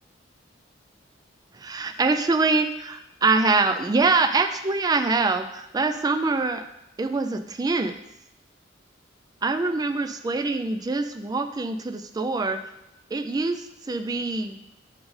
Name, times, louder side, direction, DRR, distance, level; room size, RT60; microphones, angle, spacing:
voice 1, 1.5-6.6 7.0-7.9 9.4-12.6 13.1-14.6, right 3 dB, 20° right, 9 dB, 0.3 m, -24 dB
7.2 x 5.2 x 3.2 m, 0.85 s
head